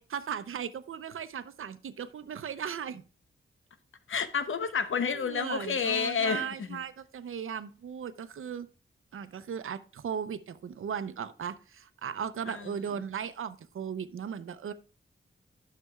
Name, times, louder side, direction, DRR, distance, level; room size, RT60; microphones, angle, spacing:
voice 1, 0.0-3.0 5.1-8.7 9.1-14.7, right 7 dB, 85° right, 0.6 m, -37 dB
voice 2, 4.1-6.8 12.5-12.7, left 6 dB, 75° left, 0.9 m, -30 dB
11.0 x 6.7 x 2.3 m
wide cardioid pair, 100°, 21 cm